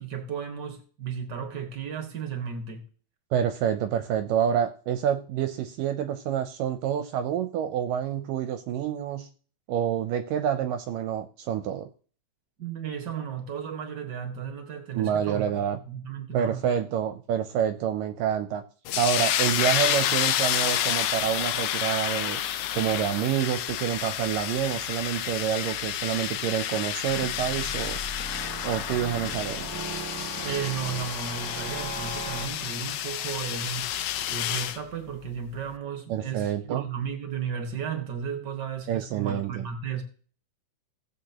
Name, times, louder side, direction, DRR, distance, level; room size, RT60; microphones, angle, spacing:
voice 1, 0.0-2.8 12.6-15.6 15.8-16.6 30.4-33.9 34.3-40.0, right 7 dB, 55° right, 1.1 m, -34 dB
voice 2, 3.3-9.3 9.7-11.9 14.9-15.8 16.3-18.6 19.0-22.4 22.7-28.0 28.6-29.7 36.1-36.8 38.9-39.7, right 9 dB, 75° right, 2.1 m, -28 dB
sound 1, 18.9-34.8, left 11 dB, 75° left, 2.0 m, -30 dB
sound 2, 27.1-32.5, right 1 dB, 5° right, 1.6 m, -37 dB
17.0 x 8.1 x 2.9 m
omnidirectional pair, 4.4 m